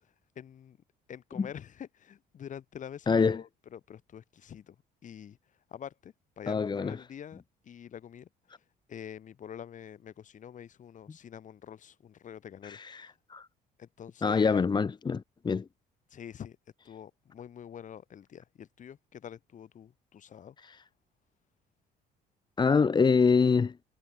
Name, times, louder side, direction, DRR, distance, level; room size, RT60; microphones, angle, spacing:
voice 1, 0.4-0.8 1.1-4.8 5.0-5.4 5.7-8.6 8.9-13.1 13.8-14.6 16.1-16.6 16.8-20.6, left 9 dB, 50° left, 3.5 m, -46 dB
voice 2, 3.1-3.4 6.5-7.0 12.6-13.5 14.2-15.6 20.6-20.8 22.6-23.8, left 5 dB, 25° left, 1.3 m, -25 dB
cardioid pair, 110°, 17 cm